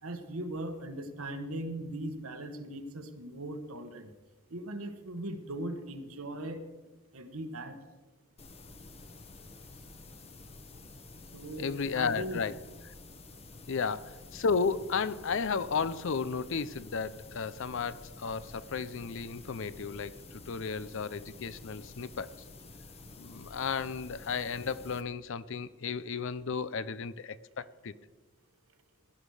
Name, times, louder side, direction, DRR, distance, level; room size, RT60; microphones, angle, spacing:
voice 1, 0.0-4.1 4.5-6.6 7.1-7.8 11.3-11.7 11.9-12.4 13.7-13.8, right 1 dB, 85° right, 1.5 m, -39 dB
sound 1, 8.4-25.0, left 2 dB, 30° left, 1.1 m, -50 dB
voice 2, 11.6-12.5 13.7-22.3 23.2-27.9, left 5 dB, 65° left, 0.6 m, -33 dB
16.5 x 11.0 x 4.9 m
head